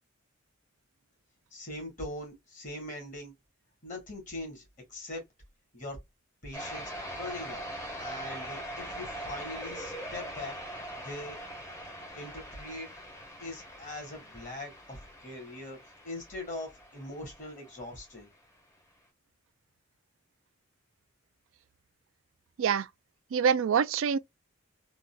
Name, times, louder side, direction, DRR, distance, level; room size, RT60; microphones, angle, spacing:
voice 1, 1.5-3.3 3.8-4.6 4.9-5.2 5.7-6.0 6.4-7.7 8.0-10.5 11.0-11.4 12.1-12.9 13.4-15.8 16.0-18.3, left 1 dB, 35° left, 1.5 m, -41 dB
sound 1, 6.5-18.0, equal, 15° left, 0.8 m, -42 dB
voice 2, 23.3-24.2, right 7 dB, 65° right, 0.3 m, -25 dB
3.7 x 2.4 x 2.2 m
head